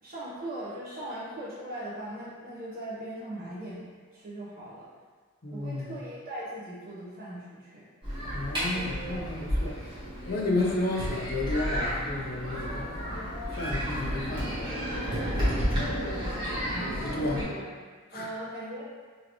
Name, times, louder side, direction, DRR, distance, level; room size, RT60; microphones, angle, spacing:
voice 1, 0.0-4.9 5.5-7.9 15.8-17.6 18.1-18.8, right 1 dB, 45° right, -8 dB, 1.1 m, -40 dB
voice 2, 5.4-6.0 8.3-9.8 10.3-13.3 13.5-14.8 17.0-17.4 18.1-18.3, left 2 dB, 45° left, -2 dB, 0.6 m, -32 dB
sound 1, 8.0-17.4, equal, 20° right, 1.2 m, -32 dB
sound 2, 8.7-9.3 10.2-10.8 11.7-12.1 13.1-13.6 14.5-15.0 15.8-16.1, left 2 dB, 90° left, 1.0 m, -43 dB
3.8 x 2.8 x 3.0 m, 1.5 s
head